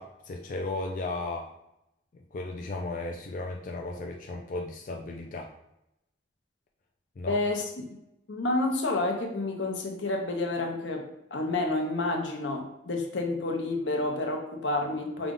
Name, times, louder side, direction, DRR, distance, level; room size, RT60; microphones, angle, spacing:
voice 1, 0.0-1.5 2.3-5.5 7.2-7.4, left 2 dB, 45° left, 1 dB, 0.4 m, -35 dB
voice 2, 7.3-7.6 8.3-11.1 11.3-15.3, left 2 dB, 85° left, 2 dB, 0.8 m, -29 dB
5.0 x 2.3 x 3.7 m, 0.86 s
head